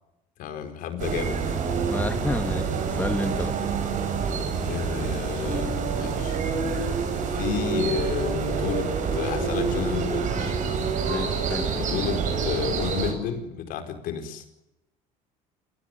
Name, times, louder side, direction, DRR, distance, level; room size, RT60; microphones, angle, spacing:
voice 1, 0.4-1.6 4.6-6.4 7.3-10.5 11.8-14.4, left 8 dB, 65° left, 8 dB, 4.8 m, -31 dB
sound 1, 1.0-13.1, right 5 dB, 55° right, 7.8 m, -27 dB
voice 2, 1.8-3.6 11.0-11.7, left 2 dB, 10° left, 7 dB, 2.4 m, -31 dB
27.5 x 18.0 x 9.9 m, 0.93 s
supercardioid pair, 100°, 15 cm